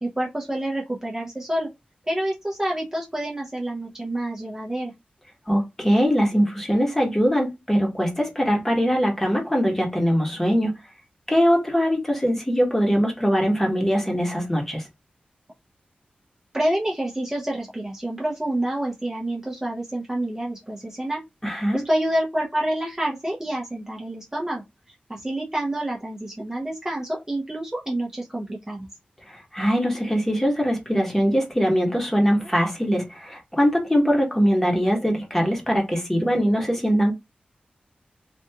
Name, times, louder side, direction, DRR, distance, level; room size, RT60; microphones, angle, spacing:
voice 1, 0.0-1.7 2.1-4.9 16.5-21.2 21.7-28.9, right 1 dB, 15° right, 0.7 m, -28 dB
voice 2, 5.5-10.7 11.3-14.9 21.4-21.8 29.2-37.1, equal, 10° left, 1.1 m, -22 dB
3.4 x 2.5 x 2.8 m
wide cardioid pair, 110°, 3 cm